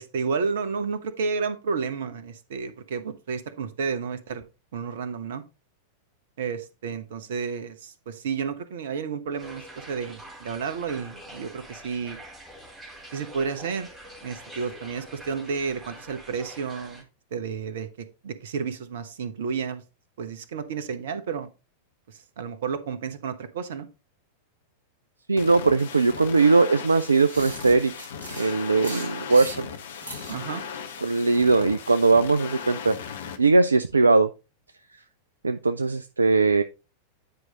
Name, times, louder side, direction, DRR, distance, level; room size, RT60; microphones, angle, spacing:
voice 1, 0.0-4.4 4.7-5.4 6.4-12.2 13.1-13.9 14.2-17.0 17.3-17.9 18.2-19.8 20.2-21.5 22.1-23.9 30.3-30.6, right 5 dB, 60° right, 1.0 m, -31 dB
sound 1, 9.4-17.0, right 1 dB, 10° right, 2.5 m, -45 dB
voice 2, 25.3-28.1 28.4-29.7 31.0-33.0 33.4-34.3 35.4-36.6, right 3 dB, 80° right, 0.4 m, -20 dB
sound 2, 25.4-33.4, left 7 dB, 60° left, 1.1 m, -38 dB
sound 3, 27.0-30.5, right 1 dB, 90° left, 3.5 m, -40 dB
9.6 x 4.7 x 4.0 m
figure-of-eight pair, 90°, 0 cm